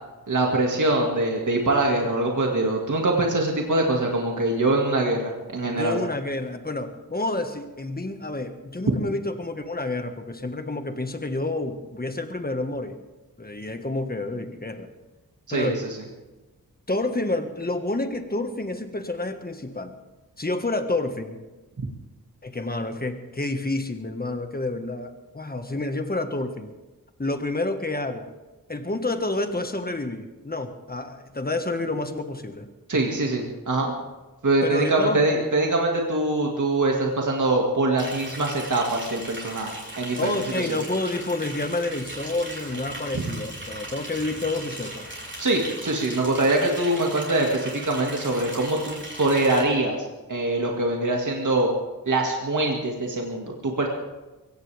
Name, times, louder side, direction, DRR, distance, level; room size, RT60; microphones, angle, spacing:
voice 1, 0.3-6.0 15.5-16.0 32.9-33.9 34.4-40.7 43.1-43.2 45.4-51.7 52.1-53.9, right 2 dB, 55° right, 0 dB, 2.1 m, -23 dB
voice 2, 5.7-13.0 13.4-14.9 15.5-15.8 16.9-19.9 20.4-21.4 22.4-26.7 27.2-28.3 28.7-32.7 34.6-35.2 40.2-45.1, left 2 dB, 25° left, 6 dB, 1.6 m, -29 dB
Liquid, 38.0-49.6, right 1 dB, 30° right, 7.0 m, -38 dB
23.0 x 17.5 x 3.5 m, 1.1 s
wide cardioid pair, 85°, 36 cm